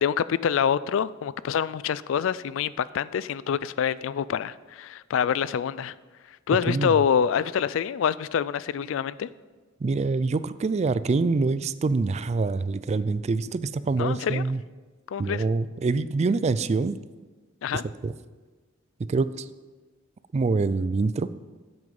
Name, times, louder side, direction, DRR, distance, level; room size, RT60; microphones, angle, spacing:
voice 1, 0.0-5.9 6.5-9.3 14.0-14.4 15.1-15.4 17.6-17.8, left 8 dB, 70° left, 18 dB, 0.3 m, -26 dB
voice 2, 9.8-14.6 15.2-17.0 17.7-18.1 19.0-19.5 20.3-21.3, right 3 dB, 35° right, 15 dB, 0.3 m, -25 dB
9.4 x 7.9 x 5.3 m, 1.3 s
head